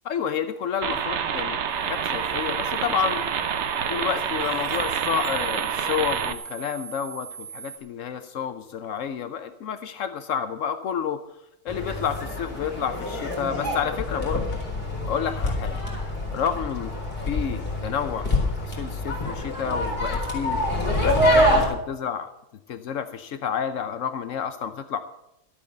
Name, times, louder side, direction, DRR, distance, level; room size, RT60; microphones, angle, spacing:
voice 1, 0.0-3.3 3.8-11.2 11.6-14.4 15.1-15.8 16.3-16.9 17.2-20.6 21.0-22.3 22.7-25.0, left 7 dB, 80° left, 9 dB, 0.7 m, -30 dB
sound 1, 0.8-6.3, right 7 dB, 60° right, 0.7 m, -27 dB
sound 2, 1.7-7.8, right 7 dB, 30° right, 3.0 m, -42 dB
sound 3, 11.7-21.7, left 1 dB, 25° left, 4.3 m, -26 dB
13.0 x 8.6 x 7.8 m, 0.84 s
omnidirectional pair, 2.1 m